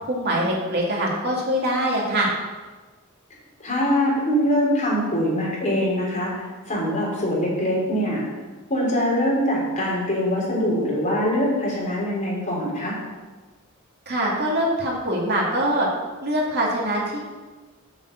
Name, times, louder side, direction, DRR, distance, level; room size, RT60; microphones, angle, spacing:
voice 1, 0.0-2.3 14.1-15.9 16.2-17.3, right 1 dB, 50° right, -3 dB, 2.5 m, -23 dB
voice 2, 3.6-8.2 8.7-13.0, equal, 35° left, -5 dB, 3.7 m, -23 dB
7.2 x 6.9 x 7.7 m, 1.3 s
head